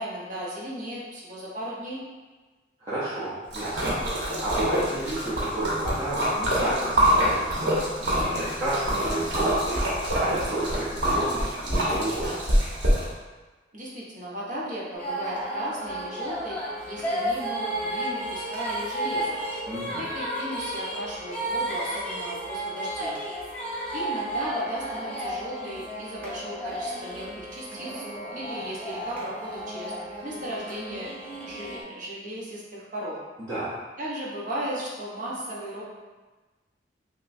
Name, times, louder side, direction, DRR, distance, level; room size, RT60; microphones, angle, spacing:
voice 1, 0.0-2.0 13.7-16.6 16.9-19.4 20.0-23.2 23.9-28.0 28.3-29.9 30.2-31.1 31.5-33.2 34.0-35.8, right 1 dB, 45° right, -6 dB, 1.0 m, -36 dB
voice 2, 2.8-12.3 19.7-20.1 33.5-33.7, right 1 dB, 20° right, -12 dB, 0.8 m, -31 dB
Splash splatter, 3.5-13.0, equal, 65° right, 1.1 m, -26 dB
sound 1, 14.9-31.8, right 1 dB, 5° left, 0.7 m, -33 dB
6.0 x 2.1 x 2.6 m, 1.3 s
head